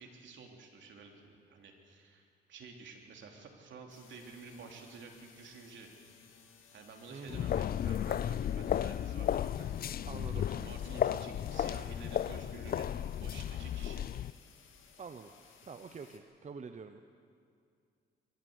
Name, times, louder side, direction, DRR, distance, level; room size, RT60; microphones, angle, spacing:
voice 1, 0.0-5.9 6.7-9.7 10.3-14.1, right 4 dB, 70° right, 2 dB, 3.3 m, -51 dB
sound 1, 3.9-16.2, left 7 dB, 80° left, 2.3 m, -61 dB
voice 2, 7.1-7.5 10.0-10.5 15.0-17.0, right 5 dB, 35° right, 8 dB, 0.9 m, -46 dB
sound 2, 7.3-14.3, left 10 dB, 50° left, 0.5 m, -34 dB
23.0 x 14.0 x 8.0 m, 2.3 s
cardioid pair, 90°, 20 cm